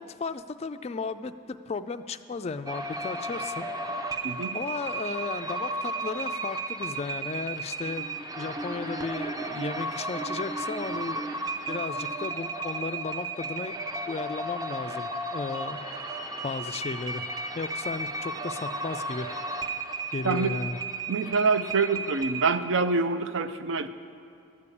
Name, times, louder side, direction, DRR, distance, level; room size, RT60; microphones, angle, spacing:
voice 1, 0.0-3.7 4.5-11.3 11.7-13.8 14.1-15.8 16.4-17.3 17.5-19.3 20.1-20.8, left 4 dB, 30° left, 11 dB, 0.3 m, -35 dB
sound 1, 2.7-22.6, right 2 dB, 20° right, 0.6 m, -34 dB
voice 2, 4.2-4.6 20.2-20.6 21.1-23.9, right 4 dB, 70° right, 11 dB, 0.5 m, -26 dB
13.5 x 6.8 x 8.4 m, 2.5 s
head